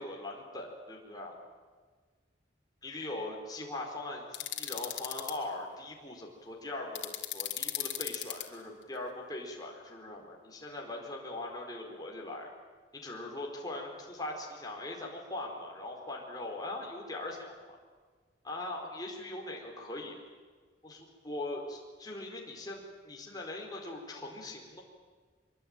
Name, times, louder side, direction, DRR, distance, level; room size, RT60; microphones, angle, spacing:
voice 1, 0.0-1.4 2.8-12.5 12.9-17.8 18.4-20.2 20.8-24.8, left 2 dB, 20° left, -1 dB, 4.6 m, -41 dB
sound 1, 4.3-5.3 6.9-8.4, left 13 dB, 90° left, 2.8 m, -35 dB
24.0 x 23.5 x 9.1 m, 1.5 s
head